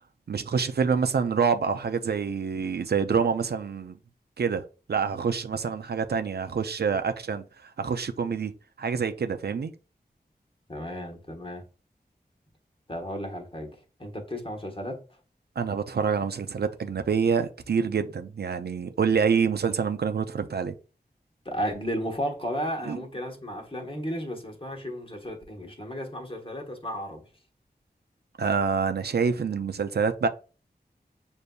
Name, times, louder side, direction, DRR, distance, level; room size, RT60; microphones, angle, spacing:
voice 1, 0.3-4.0 4.4-4.6 4.9-8.5 8.8-9.7 15.6-20.7 22.9-23.0 28.4-30.3, right 6 dB, 70° right, 0.4 m, -26 dB
voice 2, 10.7-11.6 12.9-13.7 14.0-15.0 21.4-27.2, equal, 30° left, 1.1 m, -33 dB
6.5 x 2.6 x 2.2 m
wide cardioid pair, 65°, 17 cm